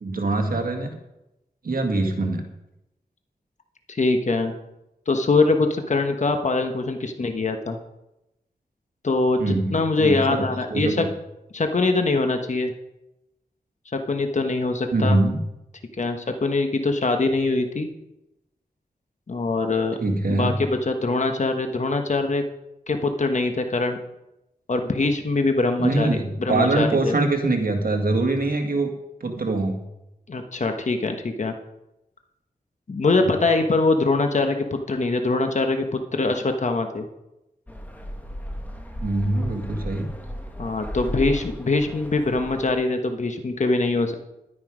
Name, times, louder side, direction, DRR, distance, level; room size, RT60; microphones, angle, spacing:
voice 1, 0.0-1.0 1.6-2.4 9.4-10.4 10.7-11.1 14.9-15.4 20.0-20.5 25.8-28.9 29.2-29.8 33.2-33.3 39.0-40.1, right 2 dB, 70° right, 4 dB, 1.9 m, -23 dB
voice 2, 3.9-4.5 5.1-7.8 9.0-11.1 11.5-12.7 13.9-15.2 16.0-17.9 19.3-20.0 20.3-22.4 22.9-24.0 24.7-27.2 30.3-31.5 32.9-37.1 40.6-44.1, left 3 dB, 50° left, 5 dB, 1.2 m, -23 dB
sound 1, 37.7-42.7, equal, 10° left, 1.7 m, -35 dB
11.5 x 9.8 x 5.1 m, 0.92 s
wide cardioid pair, 70°, 16 cm